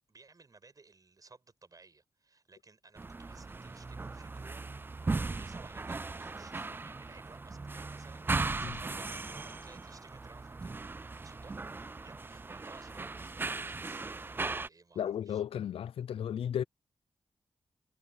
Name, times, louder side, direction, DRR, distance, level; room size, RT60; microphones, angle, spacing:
voice 1, 0.1-15.4, right 3 dB, 40° right, 7.6 m, -58 dB
sound 1, 3.0-14.7, right 3 dB, 20° right, 0.3 m, -38 dB
voice 2, 15.0-16.6, left 9 dB, 85° left, 0.5 m, -34 dB
cardioid pair, 75°, 9 cm